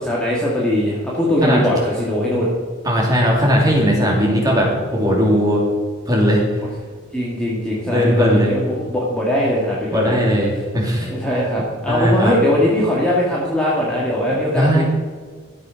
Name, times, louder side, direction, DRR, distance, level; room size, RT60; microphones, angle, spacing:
voice 1, 0.0-2.5 7.1-10.3 11.1-14.8, left 1 dB, 5° left, -6 dB, 1.8 m, -20 dB
voice 2, 2.8-5.6 6.1-6.6 7.8-8.5 9.9-11.1 11.9-12.5 14.3-14.8, equal, 20° right, -3 dB, 2.9 m, -18 dB
12.5 x 7.6 x 5.8 m, 1.6 s
head